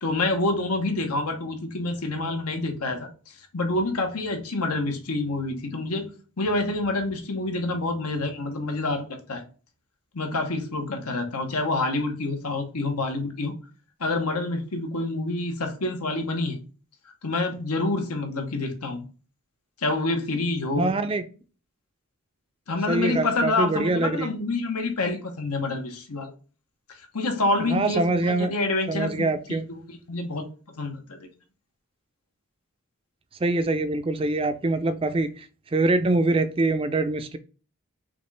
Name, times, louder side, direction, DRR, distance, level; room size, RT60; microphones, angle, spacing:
voice 1, 0.0-3.1 3.5-6.1 6.4-9.4 10.1-13.5 14.0-16.6 17.2-19.0 19.8-21.0 22.7-26.3 27.1-29.6 29.9-30.5 30.8-31.3, left 2 dB, 90° left, 1.1 m, -27 dB
voice 2, 20.8-21.2 22.9-24.3 27.6-28.5 28.9-29.6 33.4-35.5 35.7-37.4, right 2 dB, 25° right, 0.4 m, -24 dB
5.9 x 2.5 x 3.2 m
head